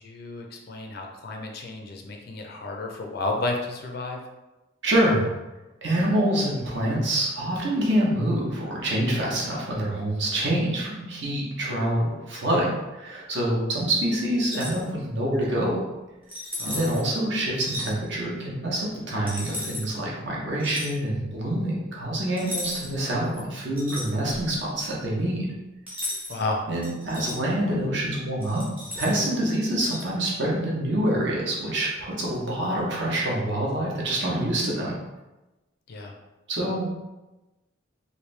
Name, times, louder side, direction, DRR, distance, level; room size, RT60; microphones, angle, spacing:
voice 1, 0.0-4.2 16.6-17.0 26.3-26.6 35.9-36.1, left 2 dB, 45° left, 1 dB, 0.4 m, -32 dB
voice 2, 4.8-5.3 5.8-15.8 16.6-25.5 26.7-28.6 29.0-35.0 36.5-37.0, right 1 dB, 55° right, -4 dB, 0.9 m, -26 dB
sound 1, 14.4-14.8 16.3-17.0 17.6-17.9 19.3-19.9 20.6-20.9 22.4-23.0 23.3-24.5 25.9-26.4 26.8-27.4 28.4-29.3 29.9-30.0, left 1 dB, 10° right, 0.6 m, -35 dB
3.1 x 2.6 x 3.2 m, 1.1 s
head